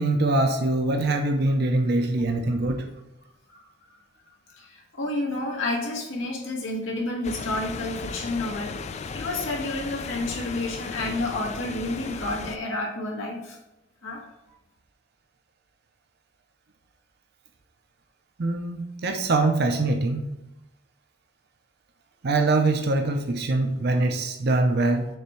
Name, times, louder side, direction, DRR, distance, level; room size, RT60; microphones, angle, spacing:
voice 1, 0.0-2.9 18.4-20.3 22.2-25.1, right 2 dB, 55° right, 5 dB, 0.6 m, -23 dB
voice 2, 4.6-13.6 14.0-14.2, left 2 dB, 90° left, -1 dB, 1.8 m, -30 dB
sound 1, 7.2-12.6, left 5 dB, 35° left, 0.3 m, -36 dB
6.5 x 3.5 x 4.4 m, 0.93 s
head